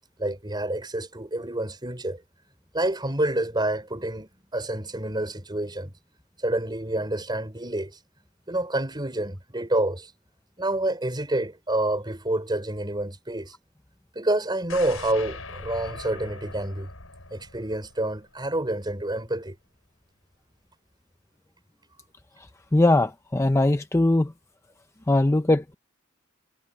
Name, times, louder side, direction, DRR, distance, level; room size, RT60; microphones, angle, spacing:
voice 1, 0.2-2.2 2.7-5.9 6.4-7.9 8.5-10.1 10.6-13.5 14.1-16.9 17.3-19.5, right 1 dB, 20° right, 5.0 m, -28 dB
sound 1, 14.7-18.7 19.0-19.1, left 4 dB, 85° left, 5.9 m, -41 dB
voice 2, 22.7-24.3 25.1-25.7, left 2 dB, 15° left, 0.5 m, -20 dB
head